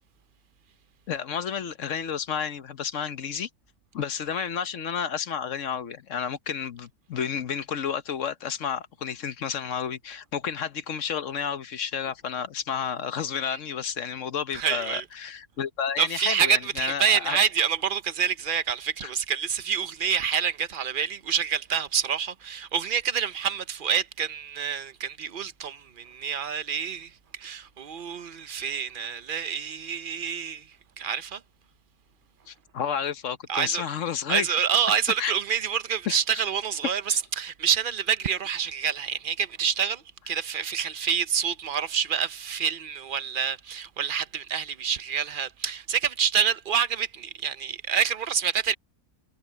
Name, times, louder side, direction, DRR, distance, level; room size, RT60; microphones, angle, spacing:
voice 1, 1.1-3.5 3.9-17.4 19.0-19.1 32.5-34.5 35.2-35.3 36.1-36.2 37.1-37.2, left 7 dB, 55° left, 1.2 m, -31 dB
voice 2, 14.5-15.0 16.0-31.4 33.5-33.9 34.3-48.7, right 7 dB, 45° right, 0.7 m, -27 dB
omnidirectional pair, 1.6 m